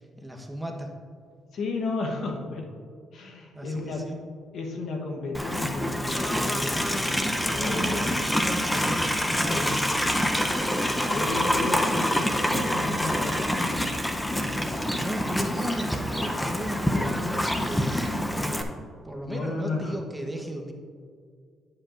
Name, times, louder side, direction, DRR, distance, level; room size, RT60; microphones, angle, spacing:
voice 1, 0.2-0.9 3.5-4.2 7.6-9.8 13.5-13.7 15.0-18.6 19.0-20.7, equal, 5° right, 1 dB, 1.0 m, -35 dB
voice 2, 1.5-2.7 3.1-4.1 4.5-8.0 9.5-10.4 11.0-15.5 16.9-17.1 19.3-20.0, left 3 dB, 65° left, 2 dB, 1.0 m, -34 dB
Livestock farm animals working animals, 5.3-18.6, equal, 10° left, 0.6 m, -26 dB
10.5 x 7.7 x 2.5 m, 2.2 s
cardioid pair, 90°, 0 cm